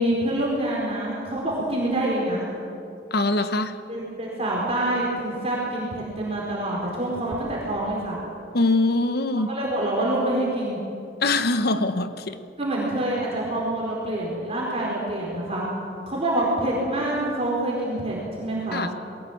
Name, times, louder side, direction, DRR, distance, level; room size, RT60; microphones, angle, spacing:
voice 1, 0.0-2.5 3.9-8.2 9.5-10.8 12.6-15.7 16.1-18.8, right 1 dB, 35° right, -4 dB, 4.6 m, -26 dB
voice 2, 3.1-3.8 8.5-9.5 11.2-12.4 18.7-18.9, left 2 dB, 60° left, 10 dB, 1.1 m, -23 dB
21.5 x 18.5 x 8.7 m, 2.6 s
head